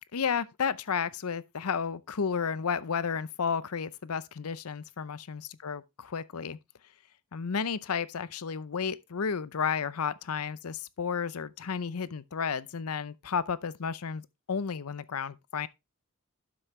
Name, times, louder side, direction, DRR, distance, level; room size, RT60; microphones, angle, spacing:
voice 1, 0.1-6.6 7.3-15.7, left 6 dB, 75° left, 0.6 m, -32 dB
12.0 x 6.3 x 3.2 m
head